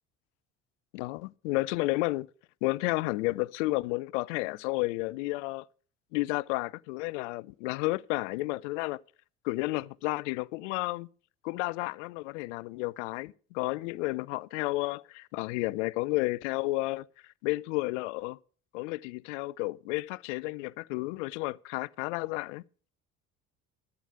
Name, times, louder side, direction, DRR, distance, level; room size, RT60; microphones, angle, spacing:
voice 1, 0.9-2.3 2.6-5.7 6.1-9.0 9.4-11.1 11.4-17.1 17.4-18.4 18.7-22.6, left 21 dB, 60° left, 0.5 m, -32 dB
12.0 x 8.1 x 6.3 m
figure-of-eight pair, 55°, 40 cm